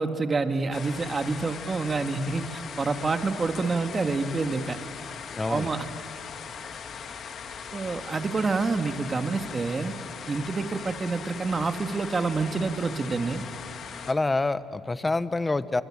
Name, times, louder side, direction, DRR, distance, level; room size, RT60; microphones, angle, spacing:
voice 1, 0.0-4.8 5.5-5.9 7.7-9.9 10.3-13.4, right 4 dB, 35° right, 7 dB, 2.0 m, -27 dB
sound 1, 0.7-14.1, left 6 dB, 60° left, 2.1 m, -39 dB
voice 2, 5.4-5.7 14.1-15.8, left 3 dB, 20° left, 14 dB, 1.1 m, -26 dB
25.0 x 25.0 x 8.9 m, 2.7 s
supercardioid pair, 75°, 0 cm